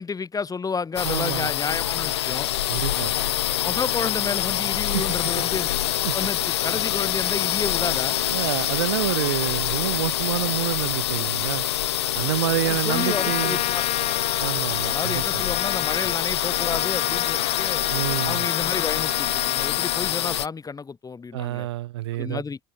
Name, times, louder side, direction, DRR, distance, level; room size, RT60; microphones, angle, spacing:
voice 1, 0.0-2.5 3.6-5.7 6.1-8.2 12.7-13.8 14.9-17.8 18.2-21.7 22.1-22.6, left 5 dB, 25° left, 1.3 m, -31 dB
sound 1, 1.0-20.5, left 12 dB, 85° left, 1.0 m, -25 dB
voice 2, 1.0-1.5 2.7-3.1 4.9-5.3 6.0-6.2 8.3-11.6 12.1-13.6 14.4-15.4 17.9-18.5 21.3-22.4, right 15 dB, 85° right, 0.6 m, -28 dB
Trumpet, 12.9-20.2, left 14 dB, 60° left, 1.5 m, -31 dB
open air
hypercardioid pair, 60°, 14 cm